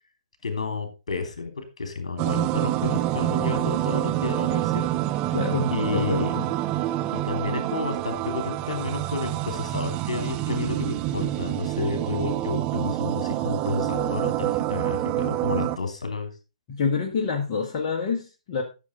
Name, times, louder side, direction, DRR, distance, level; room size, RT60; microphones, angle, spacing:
voice 1, 0.4-4.9 5.7-6.3 7.1-16.3, left 4 dB, 60° left, 6 dB, 3.3 m, -31 dB
sound 1, 2.2-15.8, right 15 dB, 25° right, 0.5 m, -27 dB
voice 2, 5.3-6.5 16.7-18.6, left 5 dB, 30° left, 0 dB, 1.8 m, -27 dB
13.0 x 6.8 x 3.8 m, 0.29 s
figure-of-eight pair, 120°, 4 cm